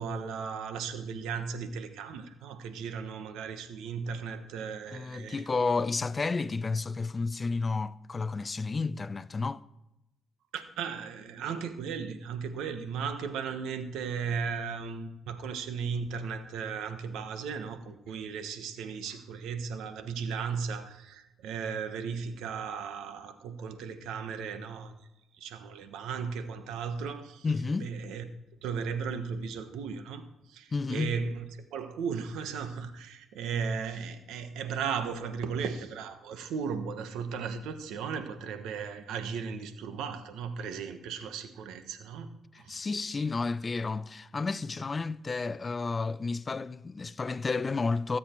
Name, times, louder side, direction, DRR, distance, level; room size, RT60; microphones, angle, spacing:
voice 1, 0.0-5.5 10.5-24.9 25.4-27.4 27.8-28.2 28.6-30.2 30.5-42.3 42.6-42.9, right 6 dB, 90° right, 1.2 m, -36 dB
voice 2, 4.9-9.6 27.4-27.9 30.7-31.2 42.5-48.2, left 4 dB, 30° left, 0.5 m, -31 dB
18.5 x 7.5 x 4.5 m
cardioid pair, 90°, 0 cm